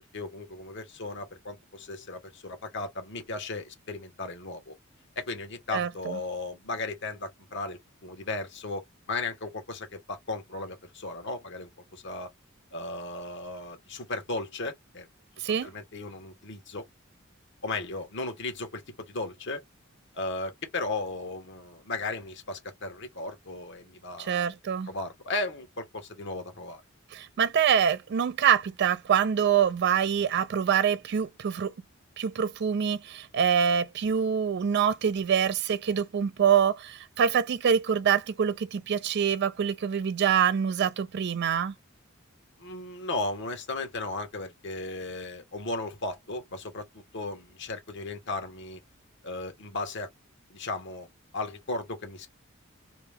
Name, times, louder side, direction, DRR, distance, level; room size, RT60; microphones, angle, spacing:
voice 1, 0.1-4.7 5.2-12.3 12.7-15.1 15.6-16.8 17.6-19.6 20.1-24.5 24.9-26.8 42.6-48.8 49.2-50.1 50.5-51.1 51.3-52.3, left 2 dB, 60° left, 1.1 m, -36 dB
voice 2, 5.7-6.2 15.4-15.7 24.2-24.9 27.1-31.7 32.2-41.7, right 8 dB, 55° right, 0.4 m, -25 dB
2.7 x 2.2 x 3.3 m
head